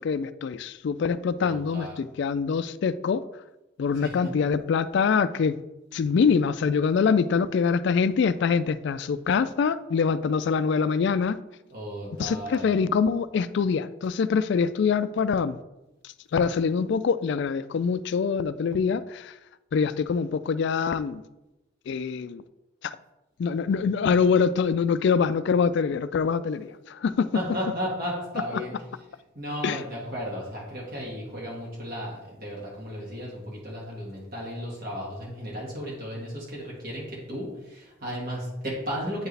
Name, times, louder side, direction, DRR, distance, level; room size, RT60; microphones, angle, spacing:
voice 1, 0.0-3.2 3.8-5.5 5.9-11.4 12.2-15.6 16.0-19.3 19.7-21.2 21.9-22.4 22.8-23.0 23.4-27.4 28.5-28.6 29.6-29.8, left 5 dB, 55° left, 14 dB, 0.3 m, -24 dB
voice 2, 1.4-1.9 4.0-4.3 11.7-12.7 27.3-28.8 29.3-39.3, equal, 45° right, -4 dB, 1.7 m, -34 dB
8.6 x 4.6 x 3.3 m, 0.99 s
head